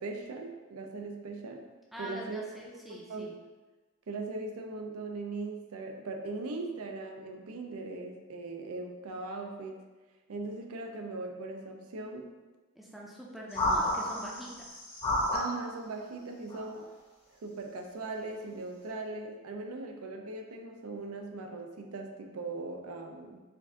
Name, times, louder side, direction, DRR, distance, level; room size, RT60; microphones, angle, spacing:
voice 1, 0.0-1.6 2.0-2.4 3.1-3.3 4.1-9.8 10.3-12.3 15.3-16.9 17.3-23.4, right 3 dB, 70° right, 3 dB, 0.5 m, -39 dB
voice 2, 1.9-3.3 12.8-14.8, equal, ahead, -4 dB, 0.5 m, -44 dB
sound 1, 13.5-15.6 16.5-16.8, left 1 dB, 25° left, 0.8 m, -30 dB
4.5 x 2.5 x 3.5 m, 1.3 s
head